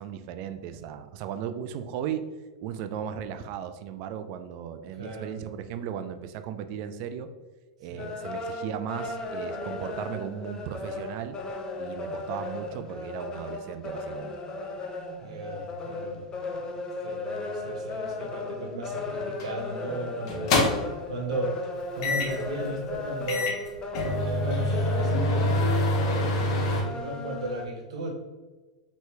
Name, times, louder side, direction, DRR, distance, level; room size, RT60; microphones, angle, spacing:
voice 1, 0.0-2.2 2.6-7.3 7.8-11.4 11.8-14.4, right 9 dB, 50° right, 9 dB, 0.3 m, -36 dB
voice 2, 4.9-5.3 7.9-8.1 15.2-16.2 16.5-23.6 24.2-28.3, right 1 dB, 75° right, 1 dB, 0.9 m, -35 dB
sound 1, 8.0-27.6, left 3 dB, 25° left, 0.4 m, -36 dB
sound 2, 19.4-19.6 20.3-21.0 22.0-22.5 22.9-23.0 23.3-26.8, left 1 dB, 60° left, 0.8 m, -26 dB
3.0 x 2.7 x 3.3 m, 1.2 s
hypercardioid pair, 110°, 3 cm